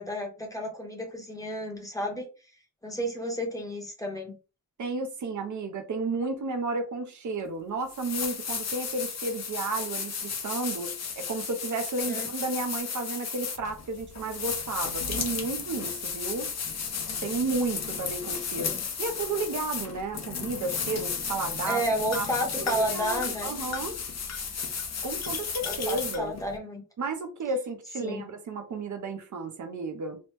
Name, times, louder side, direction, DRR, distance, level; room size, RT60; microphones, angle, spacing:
voice 1, 0.0-2.3 2.8-4.4 12.1-12.3 18.6-18.8 21.7-23.6 25.6-26.8 28.0-28.3, equal, 10° left, 0.7 m, -31 dB
voice 2, 4.8-16.5 17.2-18.7 19.0-21.8 22.1-22.3 22.6-24.0 25.0-26.3 27.0-30.2, right 3 dB, 60° right, 0.5 m, -32 dB
sound 1, 7.4-7.5 7.9-26.6, left 6 dB, 50° left, 0.5 m, -34 dB
3.0 x 2.0 x 3.1 m
wide cardioid pair, 175°, 34 cm